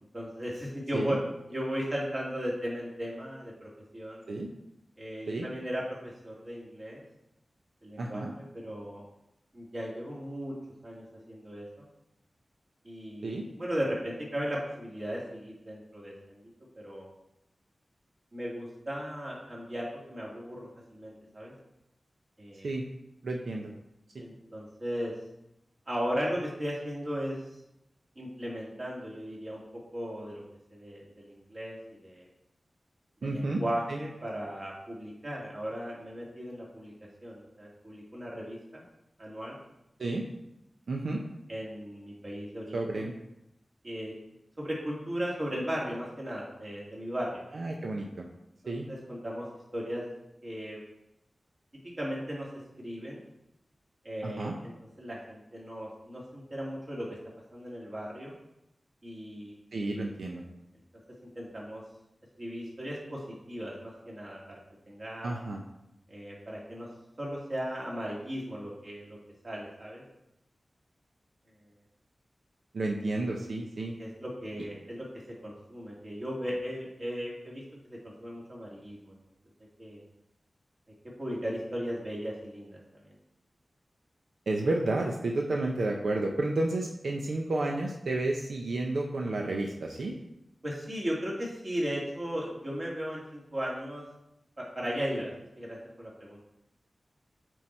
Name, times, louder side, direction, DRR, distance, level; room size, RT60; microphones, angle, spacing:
voice 1, 0.1-1.2 1.5-4.2 5.0-5.8 6.2-7.0 7.8-8.2 8.5-9.0 9.5-10.5 10.8-11.9 12.8-16.4 16.8-17.1 18.3-21.5 22.4-22.7 24.2-25.1 25.9-27.3 28.2-29.6 29.9-30.4 30.7-31.8 32.0-32.2 33.2-36.9 37.2-38.8 39.2-39.6 41.5-43.1 43.8-44.1 44.6-47.4 48.6-49.4 49.7-50.0 50.4-50.8 52.0-52.5 52.8-53.2 54.0-54.7 55.0-57.2 57.5-58.3 59.0-59.5 61.4-61.8 62.4-63.2 63.5-65.3 66.1-66.9 67.2-69.2 69.4-70.0 74.0-75.0 75.4-77.6 77.9-79.2 79.8-80.0 81.2-82.8 90.6-94.0 94.8-95.3 95.6-96.4, equal, 40° right, -4 dB, 2.4 m, -36 dB
voice 2, 8.0-8.3 13.2-13.4 22.6-22.8 23.2-23.7 33.2-33.6 33.9-34.0 40.0-40.3 40.9-41.2 42.7-43.1 47.5-48.3 48.7-48.9 54.2-54.6 59.7-60.4 65.2-65.6 72.7-73.9 84.5-90.1, right 2 dB, 85° right, 1 dB, 0.7 m, -31 dB
7.9 x 4.6 x 4.4 m, 0.86 s
wide cardioid pair, 100°, 0 cm